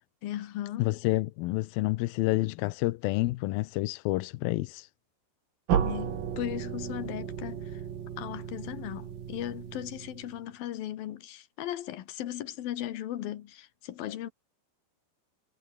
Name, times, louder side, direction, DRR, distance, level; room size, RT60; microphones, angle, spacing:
voice 1, 0.2-1.0 5.7-7.8 8.2-14.3, left 12 dB, 65° left, 3.0 m, -37 dB
voice 2, 0.8-4.9, left 19 dB, 80° left, 2.2 m, -29 dB
sound 1, 5.7-10.5, right 8 dB, 55° right, 4.1 m, -34 dB
omnidirectional pair, 5.0 m